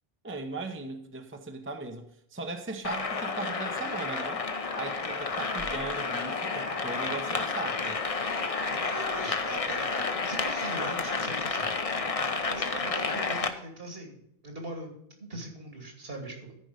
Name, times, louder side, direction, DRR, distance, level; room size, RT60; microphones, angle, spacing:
voice 1, 0.2-4.4 4.8-8.0, right 3 dB, 15° right, 5 dB, 0.7 m, -38 dB
sound 1, 2.8-13.5, left 4 dB, 35° left, 0.8 m, -31 dB
voice 2, 8.6-14.2 14.4-14.9 15.2-16.5, right 2 dB, 65° right, 2 dB, 2.8 m, -40 dB
13.5 x 5.3 x 5.1 m, 0.76 s
omnidirectional pair, 1.1 m